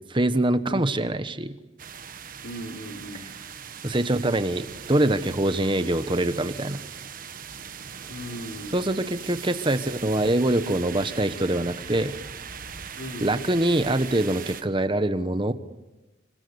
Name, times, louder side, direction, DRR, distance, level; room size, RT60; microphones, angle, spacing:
voice 1, 0.1-1.5 3.1-3.3 3.8-6.8 8.7-12.1 13.2-15.5, right 1 dB, 25° right, 11 dB, 1.2 m, -24 dB
sound 1, 1.8-14.6, right 7 dB, 45° right, 1.3 m, -40 dB
voice 2, 2.4-3.3 8.1-8.8 13.0-13.3, equal, 65° left, 3 dB, 3.6 m, -37 dB
25.5 x 24.5 x 8.0 m, 1.1 s
head